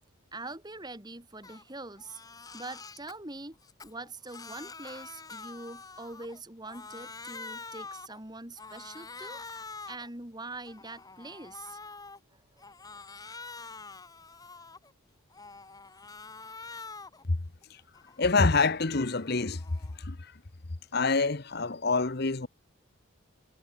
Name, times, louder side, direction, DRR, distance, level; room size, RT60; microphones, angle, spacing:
voice 1, 0.3-2.2 2.5-3.6 3.8-9.4 9.9-11.8 12.3-12.4, right 2 dB, 20° right, 2.6 m, -43 dB
Crying sobbing, 1.4-1.6 2.0-3.1 3.6-6.4 6.6-8.2 8.6-10.1 10.5-12.2 12.6-14.9 15.3-17.2 17.6-20.0, left 4 dB, 15° left, 1.3 m, -46 dB
voice 2, 18.2-19.6 20.0-20.3 20.9-22.5, left 3 dB, 50° left, 1.0 m, -26 dB
head